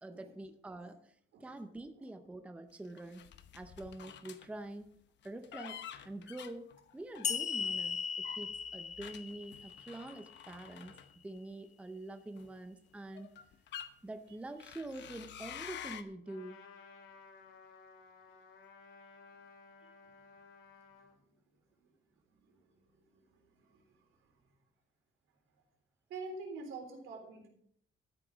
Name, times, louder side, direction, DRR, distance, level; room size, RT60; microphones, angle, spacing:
voice 1, 0.0-3.3 3.5-4.9 5.2-11.0 11.2-13.3 14.0-16.6, right 2 dB, 5° right, 8 dB, 0.6 m, -46 dB
sound 1, 3.0-4.5 5.2-7.7 8.2-11.5 12.4-12.5 13.1-13.9 14.6-16.0, left 9 dB, 60° left, 0.9 m, -49 dB
sound 2, 7.2-10.6, left 6 dB, 35° left, 0.7 m, -38 dB
Trumpet, 16.3-21.2, left 4 dB, 85° left, 2.6 m, -57 dB
voice 2, 23.1-23.8 26.1-27.5, right 3 dB, 80° right, 3 dB, 3.6 m, -46 dB
13.0 x 9.0 x 5.0 m, 0.67 s
cardioid pair, 175°, 20 cm